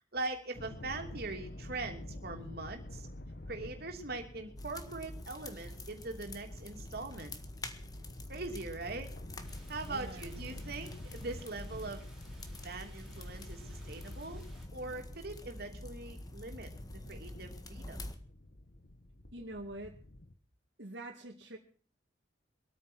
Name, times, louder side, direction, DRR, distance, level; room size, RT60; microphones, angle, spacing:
voice 1, 0.1-3.1 3.5-7.3 8.3-9.1 9.7-12.1 12.6-14.4 14.7-16.7 17.1-18.0, right 3 dB, 60° right, 4 dB, 2.9 m, -41 dB
the end, 0.5-20.4, left 1 dB, 60° left, 1.3 m, -48 dB
sound 1, 4.6-18.1, left 1 dB, 20° left, 1.6 m, -48 dB
sound 2, 9.4-14.7, right 1 dB, 5° right, 4.0 m, -60 dB
voice 2, 9.8-10.4 19.3-20.0 20.8-21.6, right 1 dB, 75° right, 0 dB, 2.2 m, -45 dB
23.0 x 9.1 x 6.3 m, 0.42 s
head